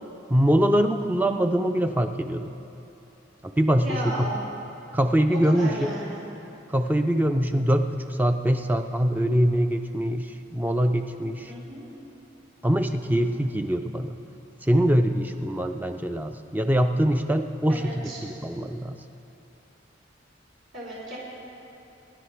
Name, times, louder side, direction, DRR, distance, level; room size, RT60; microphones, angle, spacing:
voice 1, 0.3-2.5 3.4-4.4 4.9-5.9 6.7-11.5 12.6-14.2 14.6-19.0, equal, 10° right, 7 dB, 0.4 m, -23 dB
voice 2, 3.8-4.5 5.3-6.2 11.5-11.9 17.7-18.2 20.7-21.2, right 1 dB, 70° right, -7 dB, 3.4 m, -34 dB
24.0 x 11.0 x 3.4 m, 3.0 s
head